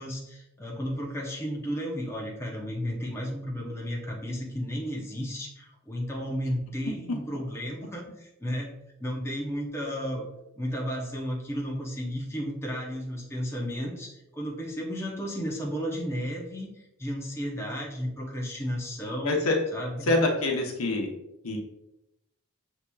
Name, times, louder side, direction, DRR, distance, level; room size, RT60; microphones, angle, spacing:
voice 1, 0.0-8.7 9.0-10.2 10.5-16.7 17.0-19.4 19.7-20.1, equal, 10° left, -2 dB, 0.7 m, -33 dB
voice 2, 19.2-19.6 20.0-21.1 21.4-21.6, left 2 dB, 85° left, 1 dB, 0.8 m, -25 dB
6.5 x 2.8 x 2.3 m, 0.87 s
head